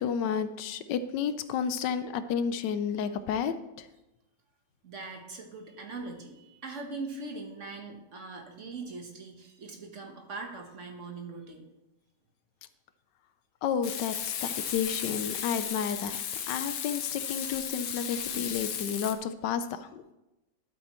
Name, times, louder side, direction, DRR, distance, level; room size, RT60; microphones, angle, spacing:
voice 1, 0.0-3.9 13.6-20.0, left 7 dB, 80° left, 11 dB, 1.3 m, -31 dB
voice 2, 1.6-2.0 4.8-11.7, right 3 dB, 45° right, 3 dB, 1.4 m, -41 dB
Frying (food), 13.8-19.1, left 8 dB, 60° left, 1.1 m, -35 dB
12.0 x 8.2 x 3.1 m, 0.98 s
omnidirectional pair, 1.9 m